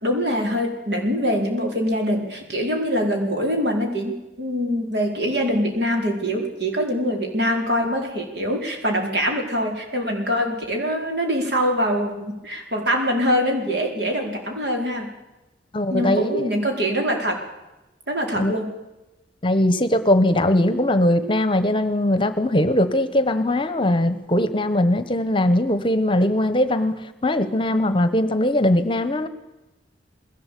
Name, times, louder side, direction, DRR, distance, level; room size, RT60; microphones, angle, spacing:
voice 1, 0.0-15.1 15.9-17.4 18.1-18.7, equal, 70° right, 2 dB, 4.6 m, -24 dB
voice 2, 15.7-16.5 18.3-18.5 19.4-26.9 27.2-29.3, left 1 dB, 30° left, 12 dB, 1.1 m, -20 dB
21.0 x 17.0 x 8.5 m, 1.0 s
head